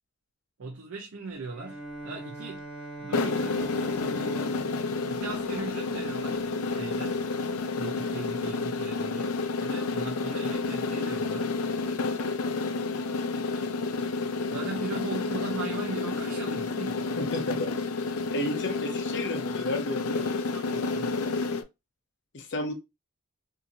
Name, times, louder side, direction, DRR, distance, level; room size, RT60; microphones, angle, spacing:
voice 1, 0.6-2.6 3.0-3.7 5.0-7.2 7.7-11.5 14.5-17.3 20.2-21.1, right 3 dB, 65° right, 0.5 m, -39 dB
Bowed string instrument, 1.5-6.4, right 2 dB, 5° right, 1.0 m, -42 dB
sound 1, 3.1-21.6, left 3 dB, 80° left, 0.4 m, -30 dB
voice 2, 17.2-17.7 18.3-20.2 22.3-22.7, left 1 dB, 55° left, 0.7 m, -32 dB
2.8 x 2.6 x 2.5 m
head